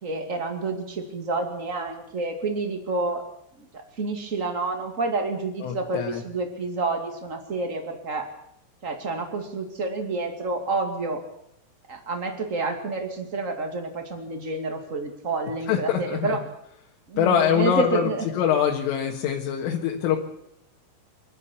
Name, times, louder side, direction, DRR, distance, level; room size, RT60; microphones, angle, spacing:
voice 1, 0.0-3.2 3.6-8.3 8.8-11.2 11.9-16.4 17.1-18.3, right 3 dB, 55° right, 4 dB, 0.8 m, -29 dB
voice 2, 5.6-6.2 15.7-16.4 17.2-18.1 18.4-20.2, left 9 dB, 80° left, 0 dB, 4.1 m, -24 dB
25.5 x 12.0 x 8.5 m, 0.79 s
omnidirectional pair, 5.9 m